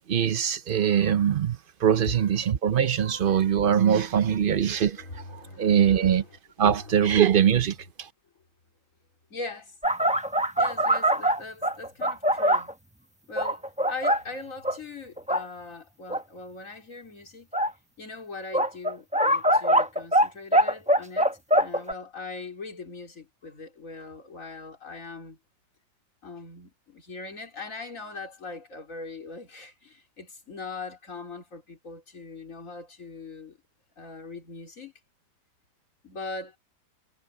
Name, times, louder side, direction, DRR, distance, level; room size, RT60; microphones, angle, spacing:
voice 1, 0.1-6.2 6.6-8.1, right 9 dB, 60° right, 0.5 m, -23 dB
voice 2, 2.1-2.5 3.6-6.3 6.6-7.6 9.3-9.8 10.6-12.7 13.3-17.5 18.0-25.4 26.2-33.6 34.0-34.9 36.0-36.6, left 3 dB, 50° left, 4.0 m, -41 dB
sound 1, 9.8-12.7 13.4-14.2 14.6-14.8 15.2-15.4 16.1-16.2 17.5-17.7 18.5-20.3 20.5-21.9, right 1 dB, 5° right, 0.7 m, -22 dB
omnidirectional pair, 1.8 m